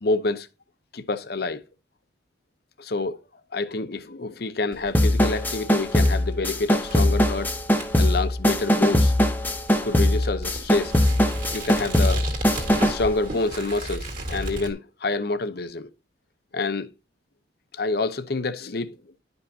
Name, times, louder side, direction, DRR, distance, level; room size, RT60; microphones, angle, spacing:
voice 1, 0.0-0.5 0.9-1.6 2.8-3.2 3.5-7.5 8.0-9.1 9.7-10.9 11.5-12.2 12.9-15.9 16.5-16.9 17.7-19.0, left 3 dB, 55° left, 0.7 m, -27 dB
sound 1, 4.7-14.7, right 2 dB, 45° right, 2.0 m, -36 dB
sound 2, 4.9-13.1, left 1 dB, 10° left, 0.7 m, -21 dB
11.0 x 5.4 x 2.7 m
head